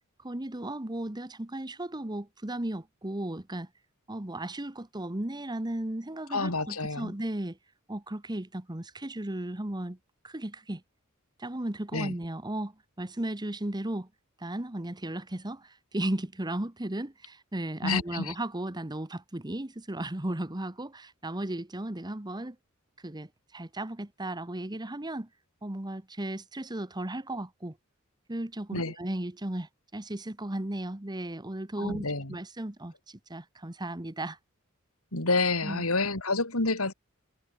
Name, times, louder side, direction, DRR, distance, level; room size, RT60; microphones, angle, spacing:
voice 1, 0.2-3.7 4.1-7.6 7.9-10.0 10.2-10.8 11.4-14.1 14.4-22.6 23.0-25.3 25.6-27.8 28.3-34.4 35.6-35.8, right 1 dB, 20° right, 1.3 m, -35 dB
voice 2, 6.3-7.1 11.9-12.1 17.8-18.3 28.7-29.0 31.8-32.4 35.1-36.9, left 3 dB, 85° left, 5.5 m, -28 dB
head